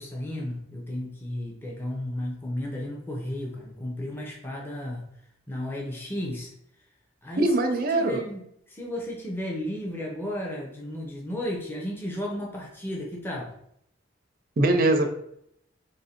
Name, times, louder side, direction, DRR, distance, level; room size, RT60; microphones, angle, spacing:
voice 1, 0.0-5.0 5.5-6.5 7.2-7.5 7.9-13.5, left 1 dB, 10° left, -3 dB, 0.5 m, -33 dB
voice 2, 7.4-8.2 14.6-15.1, right 2 dB, 45° right, 6 dB, 0.4 m, -22 dB
3.1 x 2.6 x 4.2 m, 0.72 s
head